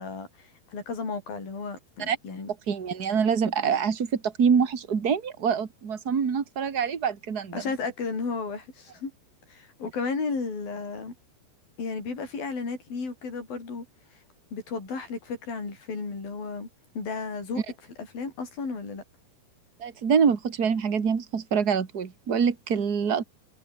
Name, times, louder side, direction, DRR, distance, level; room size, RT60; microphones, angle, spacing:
voice 1, 0.0-2.5 7.5-9.1 9.5-11.1 11.8-13.9 14.5-16.7 17.0-17.6 18.1-19.0, left 4 dB, 55° left, 9.5 m, -33 dB
voice 2, 2.7-7.6 19.8-23.2, right 6 dB, 50° right, 1.1 m, -25 dB
omnidirectional pair, 5.0 m